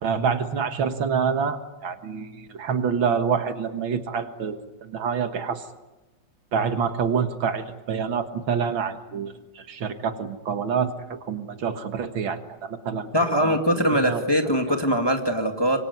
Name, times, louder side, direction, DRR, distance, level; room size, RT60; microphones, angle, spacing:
voice 1, 0.0-5.7 6.5-14.2, right 6 dB, 75° right, 9 dB, 2.3 m, -27 dB
voice 2, 13.1-15.8, equal, 10° left, 4 dB, 2.1 m, -22 dB
26.0 x 23.5 x 9.6 m, 1.1 s
omnidirectional pair, 2.2 m